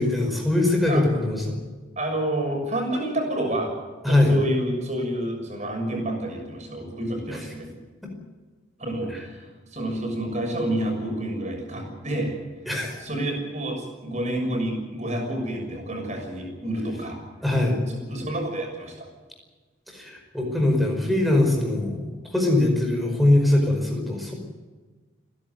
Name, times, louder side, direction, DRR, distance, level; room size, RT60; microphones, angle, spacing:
voice 1, 0.0-1.6 4.0-4.4 7.3-7.4 9.1-9.2 12.7-13.0 17.4-17.8 19.9-24.3, left 1 dB, ahead, 1 dB, 5.2 m, -22 dB
voice 2, 2.0-3.7 4.1-7.7 8.8-12.3 13.0-17.2 17.9-19.1, right 1 dB, 35° right, 2 dB, 6.6 m, -29 dB
29.5 x 11.5 x 9.4 m, 1.3 s
head